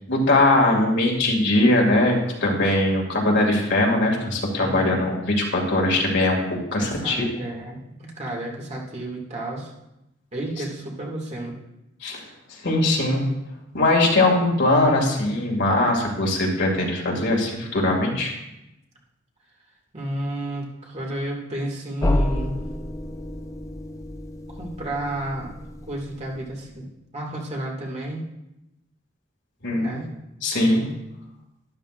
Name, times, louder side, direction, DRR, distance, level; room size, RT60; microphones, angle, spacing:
voice 1, 0.1-7.3 12.0-12.2 12.6-13.3 13.7-18.3 29.6-30.0 30.4-30.9, left 2 dB, 60° left, 0 dB, 2.3 m, -21 dB
voice 2, 4.6-5.1 6.8-9.7 10.3-11.5 19.9-22.6 24.6-25.5 25.9-28.2 29.7-30.1, right 1 dB, 35° right, -2 dB, 2.1 m, -32 dB
sound 1, 22.0-26.7, left 1 dB, 15° left, 0.6 m, -29 dB
12.5 x 12.0 x 2.5 m, 0.91 s
head